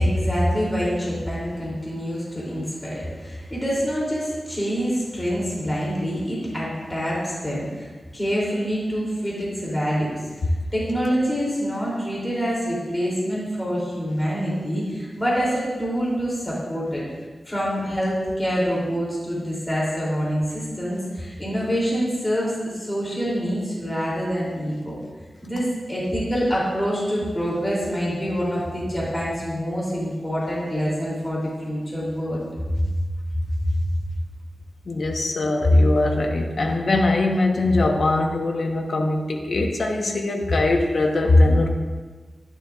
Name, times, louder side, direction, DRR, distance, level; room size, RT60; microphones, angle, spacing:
voice 1, 0.0-10.2 10.7-17.0 17.4-24.9 25.4-32.9 33.7-33.8, equal, 15° left, -6 dB, 3.1 m, -26 dB
voice 2, 34.9-41.7, left 2 dB, 60° left, 2 dB, 1.1 m, -20 dB
11.5 x 10.5 x 2.5 m, 1.4 s
wide cardioid pair, 110°, 0 cm